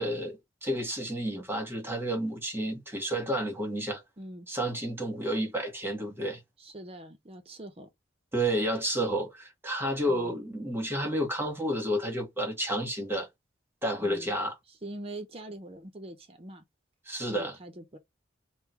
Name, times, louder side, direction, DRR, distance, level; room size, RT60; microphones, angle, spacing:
voice 1, 0.0-4.0 4.5-6.4 8.3-13.3 13.8-14.5 17.1-17.6, right 1 dB, 10° right, 1.4 m, -31 dB
voice 2, 4.2-4.5 6.6-7.9 10.1-10.3 14.0-14.3 14.7-16.6 17.2-18.0, right 1 dB, 30° right, 0.7 m, -43 dB
3.7 x 2.2 x 4.4 m
head